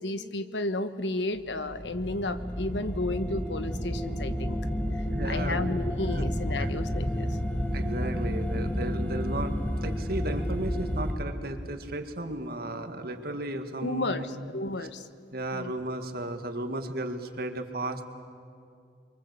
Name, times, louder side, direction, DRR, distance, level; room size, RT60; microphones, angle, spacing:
voice 1, 0.0-4.6 5.2-7.4 13.8-14.2 14.5-15.1 15.5-15.7, left 2 dB, 90° left, 11 dB, 1.3 m, -32 dB
sound 1, 1.4-11.1, equal, 10° left, 2.1 m, -31 dB
voice 2, 5.1-5.7 6.1-6.3 6.6-6.7 7.7-14.5 15.3-18.0, right 1 dB, 60° right, 7 dB, 2.0 m, -34 dB
29.0 x 23.5 x 8.2 m, 2.3 s
head